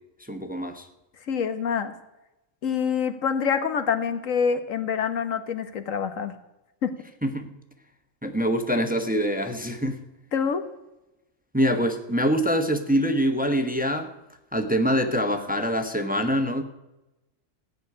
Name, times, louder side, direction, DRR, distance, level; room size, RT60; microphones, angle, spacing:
voice 1, 0.3-0.9 7.2-7.5 8.2-10.0 11.5-14.1 14.5-16.6, equal, 5° right, 6 dB, 1.0 m, -24 dB
voice 2, 1.3-1.9 2.6-6.3 6.8-6.9 10.3-10.6, left 6 dB, 85° left, 9 dB, 1.5 m, -26 dB
15.5 x 6.4 x 9.6 m, 0.95 s
omnidirectional pair, 1.3 m